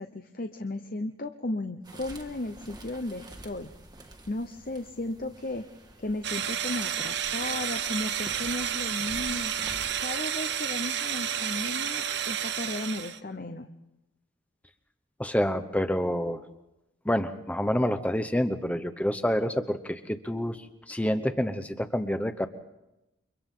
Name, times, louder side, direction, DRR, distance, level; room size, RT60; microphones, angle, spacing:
voice 1, 0.0-3.7 4.3-5.6 6.0-9.5 10.0-13.7, left 2 dB, 45° left, 6 dB, 0.9 m, -35 dB
sound 1, 1.8-10.0, right 1 dB, 20° right, 1.6 m, -48 dB
sound 2, 6.2-13.2, right 9 dB, 60° right, 0.9 m, -31 dB
voice 2, 15.2-16.4 17.0-20.6 20.9-22.5, equal, 5° left, 9 dB, 0.9 m, -28 dB
29.5 x 24.5 x 3.8 m, 0.96 s
head